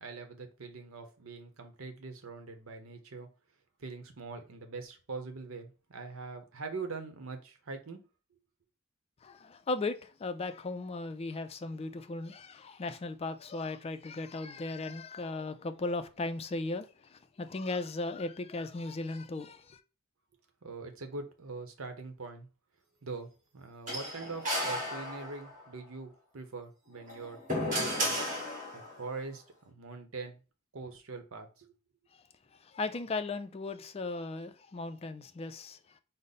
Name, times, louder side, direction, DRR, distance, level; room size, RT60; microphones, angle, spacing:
voice 1, 0.0-3.3 3.8-8.0 20.6-22.5 23.0-23.3 23.5-27.4 27.7-28.1 28.7-30.4 30.7-31.7, right 4 dB, 85° right, 0.8 m, -43 dB
voice 2, 9.2-19.8 32.6-35.8, left 3 dB, 30° left, 0.3 m, -37 dB
sound 1, 23.9-25.6 27.0-29.0, equal, 40° right, 1.6 m, -33 dB
5.1 x 2.0 x 4.0 m
head